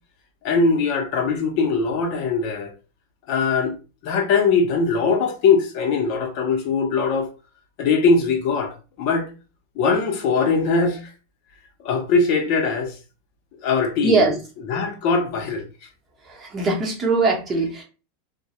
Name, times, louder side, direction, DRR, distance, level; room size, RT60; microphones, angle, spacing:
voice 1, 0.4-2.7 3.3-3.7 4.0-7.3 7.8-9.3 9.8-11.1 11.8-13.0 13.6-14.4 14.7-15.6, left 4 dB, 55° left, 0.6 m, -21 dB
voice 2, 16.3-17.8, right 3 dB, 25° right, 0.7 m, -21 dB
2.2 x 2.0 x 2.8 m
supercardioid pair, 130°, 0 cm